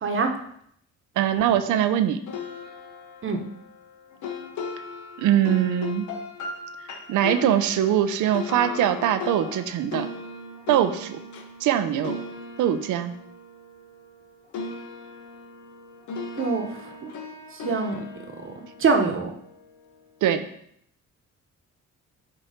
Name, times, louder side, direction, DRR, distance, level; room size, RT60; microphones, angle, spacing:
voice 1, 1.2-2.2 5.2-6.1 7.1-10.1 10.7-11.2 11.6-12.2 12.6-13.1 20.2-20.5, right 10 dB, 85° right, 10 dB, 0.7 m, -22 dB
sound 1, 2.3-14.2 14.5-19.8, left 4 dB, 75° left, 1.1 m, -37 dB
voice 2, 16.4-16.7 17.0-17.1 17.6-18.0 18.8-19.3, right 4 dB, 45° right, 5 dB, 1.1 m, -23 dB
8.7 x 3.0 x 5.1 m, 0.70 s
cardioid pair, 90°, 30 cm